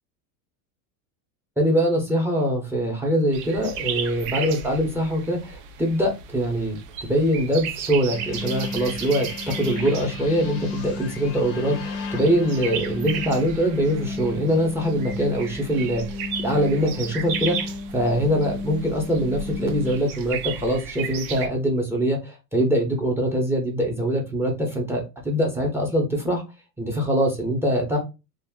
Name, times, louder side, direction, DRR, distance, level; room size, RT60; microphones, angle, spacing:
voice 1, 1.6-16.0 16.4-26.4 26.8-28.0, equal, 5° right, 1 dB, 0.6 m, -23 dB
sound 1, 3.3-21.5, right 7 dB, 80° right, 0.6 m, -35 dB
sound 2, 8.1-20.0, left 4 dB, 35° left, 0.5 m, -34 dB
2.4 x 2.0 x 3.5 m, 0.27 s
supercardioid pair, 135°, 42 cm